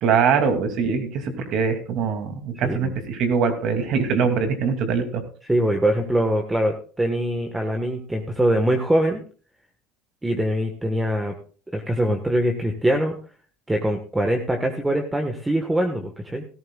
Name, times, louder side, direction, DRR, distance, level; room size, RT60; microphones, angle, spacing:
voice 1, 0.0-5.2, right 6 dB, 55° right, 6 dB, 2.7 m, -22 dB
voice 2, 2.6-2.9 5.5-9.2 10.2-11.3 11.7-13.2 13.7-16.5, right 1 dB, 10° right, 4 dB, 1.5 m, -23 dB
16.5 x 14.0 x 2.4 m, 0.40 s
supercardioid pair, 115°, 0 cm